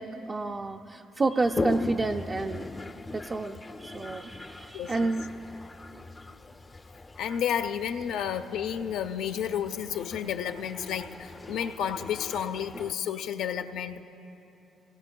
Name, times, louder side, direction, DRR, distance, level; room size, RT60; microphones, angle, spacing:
voice 1, 0.0-2.7 3.1-5.3, right 3 dB, 30° right, 2 dB, 0.4 m, -30 dB
Toilet flush, 1.4-12.9, left 2 dB, 25° left, 0.4 m, -39 dB
voice 2, 4.7-5.1 7.2-14.0, left 8 dB, 85° left, 8 dB, 0.5 m, -31 dB
23.5 x 19.5 x 2.3 m, 3.0 s
cardioid pair, 90°, 0 cm